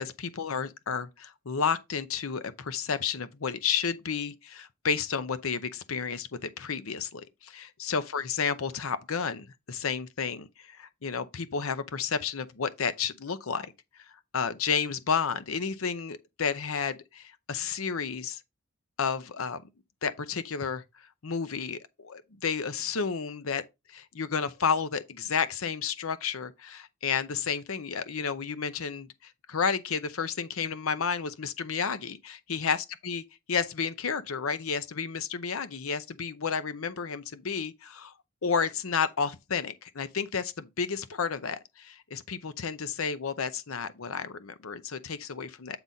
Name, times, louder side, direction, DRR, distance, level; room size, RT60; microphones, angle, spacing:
voice 1, 0.0-13.7 14.3-18.4 19.0-19.6 20.0-20.8 21.2-23.6 23.9-32.8 33.0-33.2 33.5-38.1 38.4-45.8, left 6 dB, 80° left, 0.7 m, -31 dB
8.7 x 4.0 x 4.0 m
head